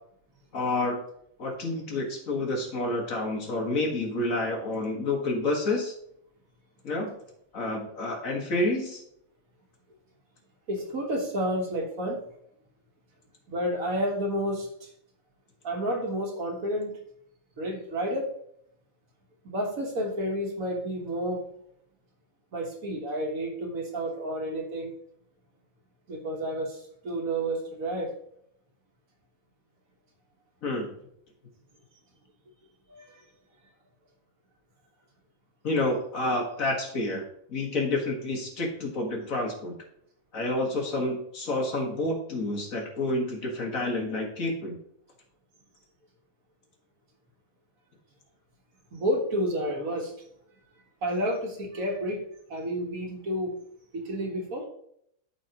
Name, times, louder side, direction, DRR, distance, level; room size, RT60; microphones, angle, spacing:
voice 1, 0.5-1.0 1.4-5.9 6.8-7.1 7.5-9.0 30.6-30.9 35.6-37.2 37.5-39.8 40.3-44.8, left 2 dB, 60° left, 0 dB, 2.0 m, -29 dB
voice 2, 10.7-12.2 13.5-14.9 15.6-17.0 17.6-18.3 19.5-21.4 22.5-24.9 26.1-28.1 32.9-33.1 48.9-50.1 51.0-52.2 52.5-53.6 53.9-54.7, equal, 65° right, 1 dB, 1.8 m, -30 dB
13.0 x 4.4 x 2.9 m, 0.70 s
omnidirectional pair, 1.6 m